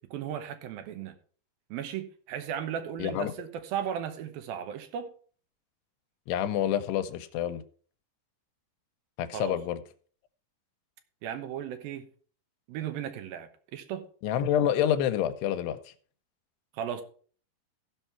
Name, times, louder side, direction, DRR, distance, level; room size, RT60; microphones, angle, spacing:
voice 1, 0.1-1.1 1.7-5.1 9.3-9.5 11.2-12.1 12.7-14.0 16.7-17.0, right 9 dB, 70° right, 8 dB, 2.6 m, -36 dB
voice 2, 3.0-3.3 6.3-7.6 9.2-9.8 14.2-15.9, left 10 dB, 85° left, 9 dB, 2.9 m, -28 dB
15.5 x 5.6 x 4.5 m, 0.43 s
omnidirectional pair, 4.7 m